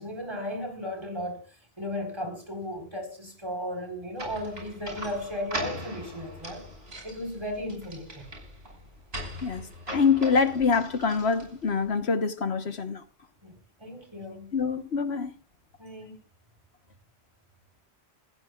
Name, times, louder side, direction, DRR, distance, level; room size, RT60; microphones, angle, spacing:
voice 1, 0.0-1.4 1.8-6.6 7.0-8.3 13.4-14.5 15.8-16.2, left 1 dB, 25° right, 4.5 m, -35 dB
sound 1, 4.2-11.8, equal, 70° right, 6.7 m, -40 dB
voice 2, 9.9-13.0 14.5-15.3, left 5 dB, 80° left, 1.5 m, -25 dB
28.0 x 15.0 x 2.4 m
omnidirectional pair, 1.1 m